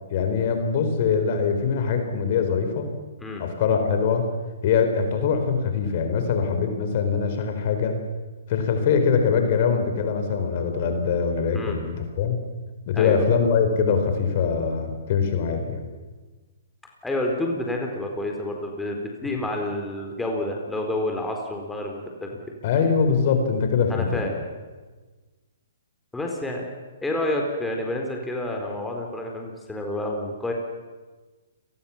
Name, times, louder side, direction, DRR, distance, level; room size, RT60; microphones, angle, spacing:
voice 1, 0.1-2.9 3.4-4.3 4.6-8.0 8.5-12.4 12.9-15.8 22.6-24.2, left 6 dB, 45° left, 6 dB, 4.5 m, -23 dB
voice 2, 12.9-13.2 17.0-22.3 23.9-24.4 26.1-26.6 27.0-30.5, left 1 dB, 5° left, 1 dB, 4.3 m, -29 dB
29.0 x 20.0 x 7.4 m, 1.3 s
hypercardioid pair, 130°, 0 cm